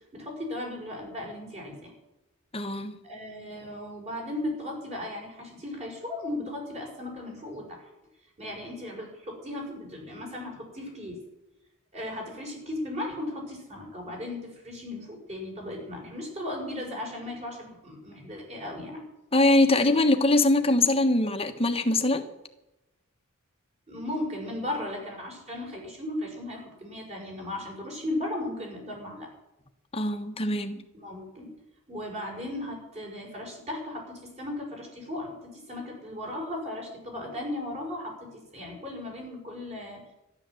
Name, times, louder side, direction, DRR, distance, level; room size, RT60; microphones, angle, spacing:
voice 1, 0.1-1.9 3.0-7.8 8.4-11.2 11.9-19.0 23.9-29.3 30.9-31.5 31.9-40.0, left 1 dB, 30° right, 0 dB, 5.8 m, -36 dB
voice 2, 2.5-3.0 19.3-22.3 29.9-30.8, left 2 dB, 25° left, 6 dB, 1.3 m, -23 dB
13.0 x 11.0 x 7.8 m, 0.93 s
head